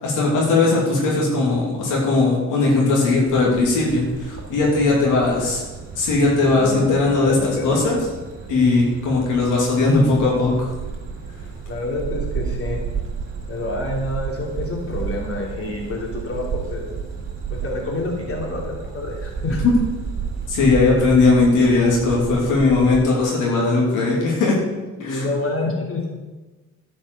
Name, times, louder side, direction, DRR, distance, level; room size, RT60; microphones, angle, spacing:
voice 1, 0.0-5.6 5.9-7.3 7.6-8.0 8.5-10.5 19.6-19.7 20.5-24.6 25.0-25.3, left 3 dB, 90° left, -3 dB, 2.7 m, -18 dB
sound 1, 3.3-23.0, right 6 dB, 45° right, 3.6 m, -32 dB
voice 2, 6.4-7.9 11.7-12.8 13.5-16.8 17.5-19.6 25.0-26.1, left 2 dB, 50° left, -2 dB, 3.0 m, -27 dB
11.0 x 5.6 x 6.9 m, 1.2 s
cardioid pair, 90°, 30 cm